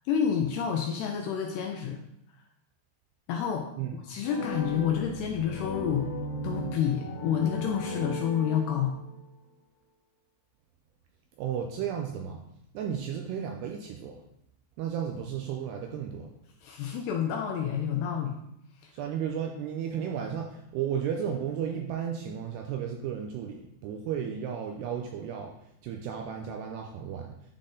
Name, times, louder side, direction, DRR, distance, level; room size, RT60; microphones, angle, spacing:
voice 1, 0.1-2.0 3.3-3.7 4.1-6.1 6.4-9.0 16.6-18.4, left 8 dB, 80° left, 2 dB, 2.4 m, -29 dB
sound 1, 4.2-9.2, equal, 60° left, 2.9 m, -37 dB
voice 2, 11.4-12.4 12.7-14.2 14.8-16.3 18.9-25.5 25.8-27.3, right 8 dB, 85° right, 2 dB, 2.4 m, -34 dB
10.0 x 3.9 x 3.8 m, 0.78 s
omnidirectional pair, 5.3 m